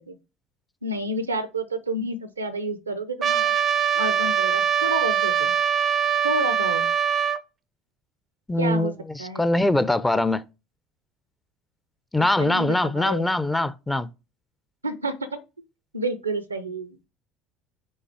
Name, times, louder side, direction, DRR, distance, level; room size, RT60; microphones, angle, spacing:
voice 1, 0.8-3.5 3.9-5.5 6.2-6.9 8.6-8.9 9.2-9.5 12.4-13.2 14.8-15.4 15.9-17.1, right 2 dB, 90° right, 0.6 m, -29 dB
Trumpet, 3.2-7.4, right 8 dB, 40° right, 0.5 m, -22 dB
voice 2, 8.5-10.4 12.1-14.1, left 1 dB, 10° left, 0.5 m, -23 dB
5.5 x 4.1 x 4.7 m
figure-of-eight pair, 65°, 0 cm